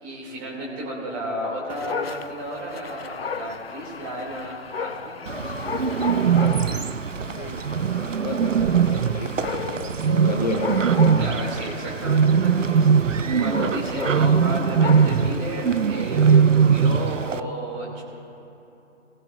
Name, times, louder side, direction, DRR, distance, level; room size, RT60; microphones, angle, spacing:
voice 1, 0.0-5.6 6.0-6.7 11.2-18.0, right 1 dB, 20° right, -4 dB, 2.5 m, -33 dB
Dog, 1.7-15.4, left 6 dB, 55° left, 0.5 m, -35 dB
Bird, 5.3-17.4, right 6 dB, 80° right, 0.6 m, -21 dB
voice 2, 7.4-10.9, left 4 dB, 35° left, 1 dB, 0.8 m, -32 dB
21.0 x 17.0 x 2.5 m, 3.0 s
figure-of-eight pair, 145°, 38 cm